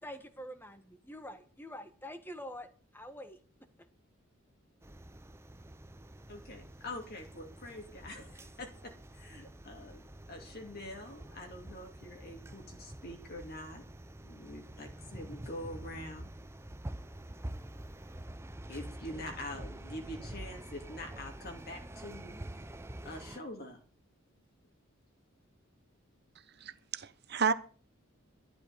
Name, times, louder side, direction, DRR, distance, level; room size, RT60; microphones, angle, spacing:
voice 1, 0.0-2.7 2.9-3.4, equal, 10° left, 9 dB, 1.4 m, -45 dB
sound 1, 4.8-23.4, right 1 dB, 10° right, 0.6 m, -47 dB
voice 2, 6.3-10.0 10.3-13.8 14.2-16.3 18.7-22.4 23.0-23.8, left 1 dB, 45° left, 2 dB, 2.7 m, -45 dB
voice 3, 26.6-27.5, right 5 dB, 50° right, 12 dB, 1.0 m, -31 dB
12.5 x 10.5 x 6.7 m, 0.42 s
head